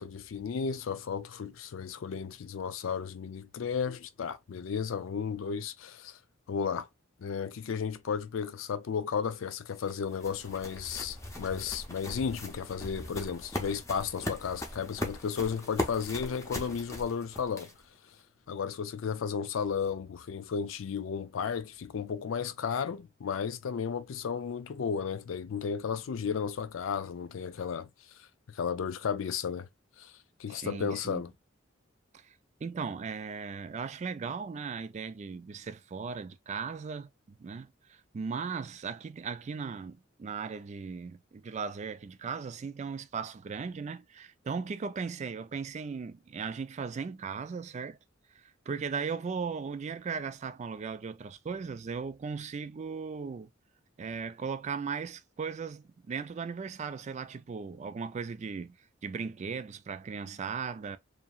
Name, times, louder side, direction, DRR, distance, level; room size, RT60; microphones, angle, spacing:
voice 1, 0.0-6.2 6.5-6.9 7.2-17.7 18.5-27.9 28.2-29.7 30.0-30.1 30.4-31.3, left 6 dB, 85° left, 0.4 m, -34 dB
sound 1, 9.4-18.0, left 1 dB, 15° left, 0.6 m, -39 dB
voice 2, 30.5-31.2 32.1-32.3 32.6-37.1 37.4-48.0 48.7-53.5 54.0-58.8 59.0-61.0, right 5 dB, 35° right, 0.3 m, -37 dB
2.9 x 2.6 x 2.2 m
head